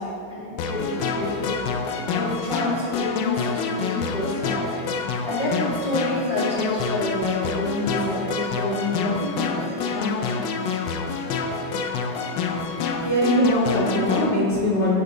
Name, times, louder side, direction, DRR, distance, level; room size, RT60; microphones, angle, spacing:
voice 1, 0.0-4.6 5.2-10.4 12.3-12.4, left 1 dB, 30° right, -9 dB, 1.6 m, -28 dB
sound 1, 0.6-14.3, left 5 dB, 80° left, 1.3 m, -27 dB
voice 2, 13.0-15.0, equal, 40° left, -7 dB, 1.7 m, -21 dB
7.0 x 6.7 x 3.8 m, 2.2 s
omnidirectional pair, 2.0 m